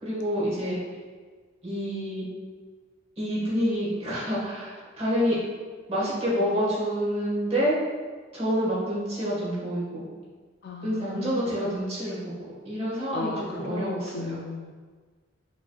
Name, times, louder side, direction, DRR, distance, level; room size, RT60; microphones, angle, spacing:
voice 1, 0.0-0.8 1.6-2.3 3.2-5.4 5.9-7.7 8.3-10.0 10.8-12.3 12.6-14.3, equal, 30° right, -8 dB, 1.4 m, -28 dB
voice 2, 10.6-11.5 13.1-14.7, left 3 dB, 50° left, 2 dB, 0.3 m, -35 dB
5.3 x 3.1 x 2.3 m, 1.5 s
head